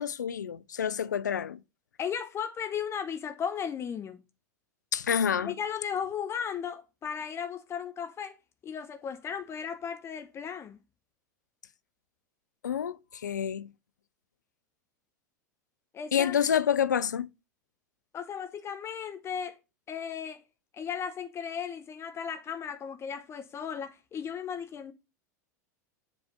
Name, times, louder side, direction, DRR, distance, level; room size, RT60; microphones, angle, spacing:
voice 1, 0.0-1.6 4.9-5.5 12.6-13.7 16.1-17.3, left 8 dB, 80° left, 0.4 m, -28 dB
voice 2, 2.0-4.2 5.4-8.4 8.6-10.8 15.9-16.4 18.1-19.6 19.9-20.4 20.7-24.9, left 7 dB, 30° left, 0.6 m, -35 dB
7.2 x 3.3 x 5.2 m
figure-of-eight pair, 85°, 9 cm